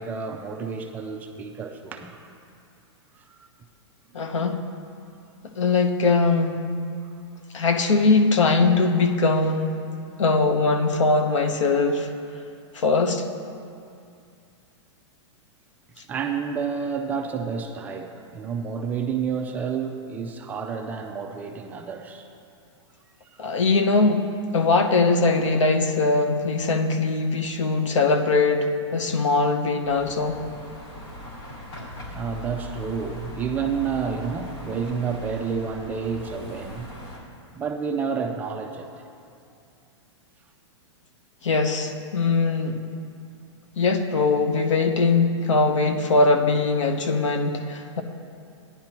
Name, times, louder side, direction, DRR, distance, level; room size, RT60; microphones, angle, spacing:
voice 1, 0.0-2.2 3.1-3.3 7.0-7.1 16.0-22.3 23.3-23.4 32.1-36.9 37.5-38.9, right 6 dB, 10° right, 4 dB, 0.3 m, -30 dB
voice 2, 4.1-4.6 5.6-6.6 7.5-9.8 10.2-12.1 12.7-13.2 23.4-24.3 24.5-30.4 41.4-42.8 43.8-48.0, left 3 dB, 90° left, 6 dB, 0.9 m, -21 dB
sound 1, 29.8-37.2, equal, 50° left, 2.3 m, -39 dB
15.0 x 10.5 x 2.9 m, 2.5 s
hypercardioid pair, 160°, 15 cm